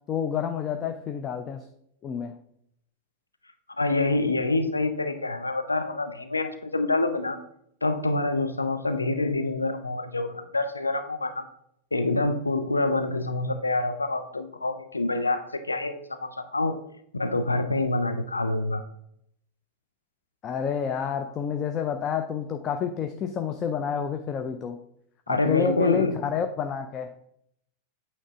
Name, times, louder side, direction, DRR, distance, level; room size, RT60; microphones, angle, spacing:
voice 1, 0.1-1.6 2.0-2.4 20.4-24.8 25.3-27.1, left 7 dB, 30° left, 7 dB, 0.5 m, -29 dB
voice 2, 3.8-7.4 7.8-11.5 11.9-16.7 17.1-18.8 25.3-26.2, left 2 dB, 80° left, 7 dB, 0.6 m, -26 dB
8.6 x 3.3 x 4.9 m, 0.72 s
figure-of-eight pair, 90°, 0 cm